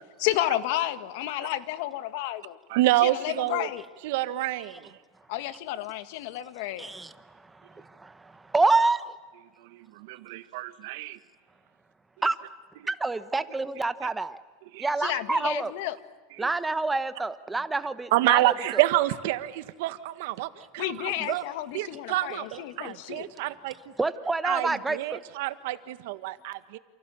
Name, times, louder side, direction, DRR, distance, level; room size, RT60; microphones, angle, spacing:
voice 1, 0.2-2.6 3.0-3.8 5.3-6.9 15.0-16.0 20.8-23.3, left 14 dB, 60° left, 11 dB, 1.8 m, -31 dB
voice 2, 2.7-3.7 4.0-4.9 9.7-11.2 14.7-15.2 16.4-16.5 18.1-21.4 21.7-23.7 24.4-26.8, right 16 dB, 65° right, 12 dB, 1.6 m, -28 dB
voice 3, 6.8-7.1 7.7-9.1 12.2-12.3 12.9-14.4 14.8-15.7 16.4-18.8 21.2-21.3 24.0-25.2, right 3 dB, 10° right, 12 dB, 1.1 m, -27 dB
29.0 x 28.5 x 7.2 m, 1.3 s
supercardioid pair, 160°, 0 cm